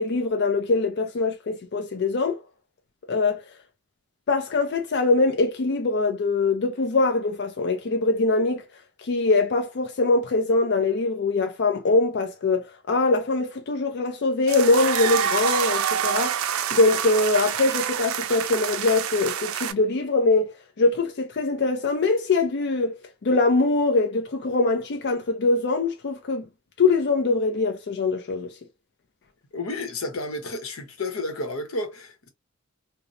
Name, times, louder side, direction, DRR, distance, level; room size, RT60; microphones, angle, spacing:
voice 1, 0.0-2.4 3.1-3.4 4.3-8.6 9.0-20.5 20.8-22.9 23.2-26.5 26.8-28.6, left 3 dB, 55° left, 0.4 m, -23 dB
sound 1, 14.5-19.7, right 8 dB, 85° right, 0.4 m, -27 dB
voice 2, 29.5-32.3, left 2 dB, 85° left, 0.8 m, -31 dB
2.9 x 2.0 x 2.5 m
head